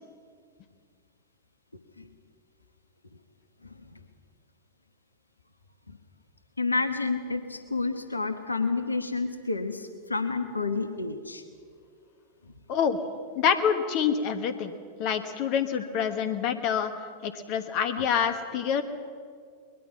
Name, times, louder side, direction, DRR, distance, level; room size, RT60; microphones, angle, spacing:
voice 1, 3.6-4.0 5.9-6.0 6.6-11.4 12.4-12.5 13.1-13.2 18.0-18.1, left 3 dB, 80° left, 9 dB, 1.2 m, -30 dB
voice 2, 13.4-14.7 15.0-16.9 17.2-18.8, left 7 dB, 45° left, 10 dB, 1.4 m, -26 dB
22.0 x 20.5 x 5.9 m, 2.1 s
figure-of-eight pair, 90°, 0 cm